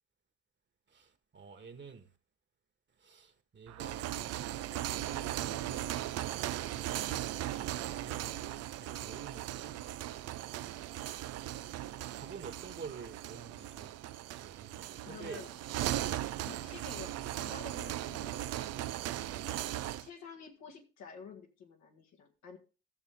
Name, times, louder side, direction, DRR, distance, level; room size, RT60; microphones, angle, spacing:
voice 1, 0.9-2.1 3.0-4.5 4.9-5.9 7.3-9.8 12.1-13.9 14.4-15.4 16.8-16.9, right 5 dB, 40° right, 1.7 m, -49 dB
sound 1, 3.7-20.1, right 13 dB, 60° right, 0.5 m, -38 dB
voice 2, 15.0-15.6 16.4-18.8 19.5-19.7 20.0-22.6, left 5 dB, 70° left, 1.9 m, -50 dB
15.0 x 6.7 x 3.6 m
hypercardioid pair, 50°, 29 cm